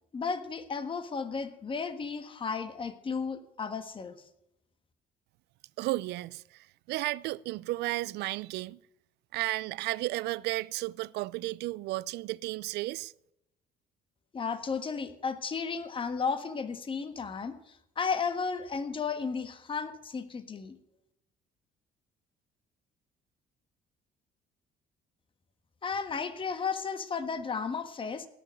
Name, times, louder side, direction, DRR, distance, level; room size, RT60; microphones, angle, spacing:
voice 1, 0.1-4.2 14.3-20.8 25.8-28.3, left 5 dB, 30° left, 1.5 m, -34 dB
voice 2, 5.8-6.4 6.9-8.8 9.3-13.1, right 18 dB, 80° right, 0.5 m, -33 dB
17.5 x 7.1 x 9.2 m
cardioid pair, 110°, 17 cm